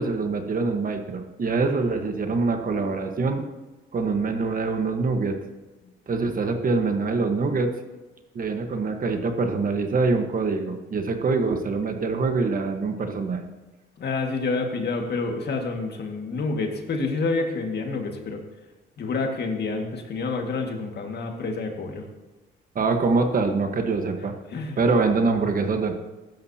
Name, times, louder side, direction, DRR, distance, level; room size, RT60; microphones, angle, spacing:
voice 1, 0.0-3.4 3.9-5.4 6.1-7.7 8.3-13.4 22.7-24.3 24.8-26.0, right 4 dB, 45° right, 6 dB, 1.4 m, -24 dB
voice 2, 14.0-18.4 19.0-22.1 24.5-24.8, left 3 dB, 55° left, 3 dB, 2.0 m, -28 dB
15.0 x 12.0 x 2.9 m, 1.2 s
cardioid pair, 90°, 20 cm